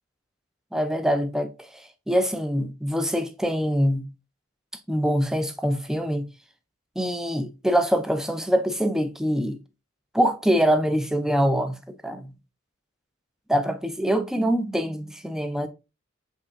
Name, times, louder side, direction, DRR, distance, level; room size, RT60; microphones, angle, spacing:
voice 1, 0.7-4.0 4.9-6.3 7.0-9.6 10.1-12.3 13.5-15.7, equal, 5° right, 0.4 m, -24 dB
5.4 x 3.7 x 2.5 m
head